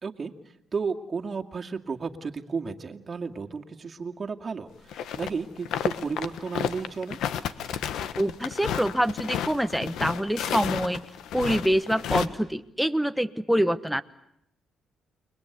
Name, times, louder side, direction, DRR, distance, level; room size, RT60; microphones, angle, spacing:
voice 1, 0.0-0.3 0.7-7.2, right 5 dB, 35° right, 3 dB, 2.3 m, -33 dB
sound 1, 4.9-5.3 5.6-12.3, left 9 dB, 80° left, 1.4 m, -31 dB
voice 2, 8.2-11.0 11.3-14.0, equal, ahead, 10 dB, 1.2 m, -25 dB
30.0 x 22.5 x 8.3 m, 0.76 s
cardioid pair, 90°, 0 cm